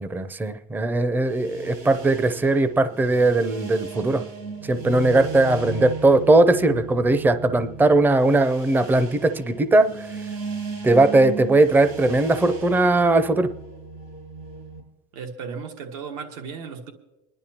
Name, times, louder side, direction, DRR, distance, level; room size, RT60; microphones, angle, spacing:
voice 1, 0.0-4.2 4.7-9.9 10.8-13.5, right 2 dB, 10° right, 13 dB, 0.5 m, -19 dB
sound 1, 1.1-14.8, right 4 dB, 75° right, 4.6 m, -36 dB
voice 2, 15.1-16.9, right 5 dB, 90° right, 4 dB, 1.5 m, -35 dB
26.0 x 11.0 x 2.9 m, 1.0 s
cardioid pair, 130°, 17 cm